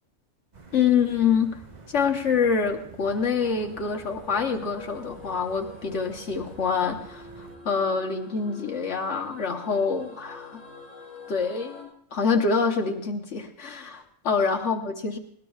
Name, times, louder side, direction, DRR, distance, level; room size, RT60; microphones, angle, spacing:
sound 1, 0.5-7.6, right 4 dB, 35° right, 1.4 m, -48 dB
voice 1, 0.7-1.6 1.9-10.6 11.3-15.2, left 5 dB, 60° left, 2 dB, 1.2 m, -26 dB
sound 2, 3.1-11.8, left 2 dB, 80° right, 6.8 m, -46 dB
19.5 x 19.0 x 2.4 m, 0.68 s
omnidirectional pair, 1.4 m